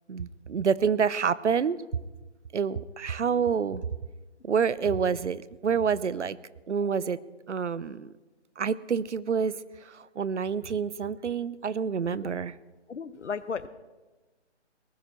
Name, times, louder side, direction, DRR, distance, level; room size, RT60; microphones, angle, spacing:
voice 1, 0.1-1.8 2.5-3.9 4.4-6.4 6.7-7.2 7.5-8.1 8.6-12.5, right 6 dB, 80° right, 18 dB, 0.8 m, -28 dB
voice 2, 12.9-13.7, left 5 dB, 75° left, 15 dB, 1.0 m, -34 dB
19.5 x 12.5 x 4.4 m, 1.2 s
figure-of-eight pair, 150°, 35 cm